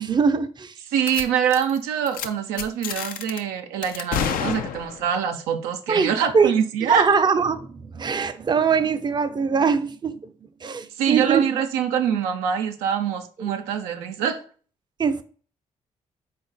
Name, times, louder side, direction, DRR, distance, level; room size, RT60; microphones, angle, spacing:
voice 1, 0.0-0.8 5.9-6.5 6.8-10.3 10.6-11.5 13.4-13.5 15.0-15.2, right 5 dB, 30° right, 0.4 m, -22 dB
voice 2, 0.9-7.0 11.0-14.4, right 8 dB, 90° right, 0.4 m, -24 dB
sound 1, 1.1-1.2 1.5-1.8 2.1-2.3 2.6-3.4 3.8-5.2, left 8 dB, 70° left, 0.4 m, -29 dB
3.8 x 2.3 x 3.8 m
hypercardioid pair, 50°, 15 cm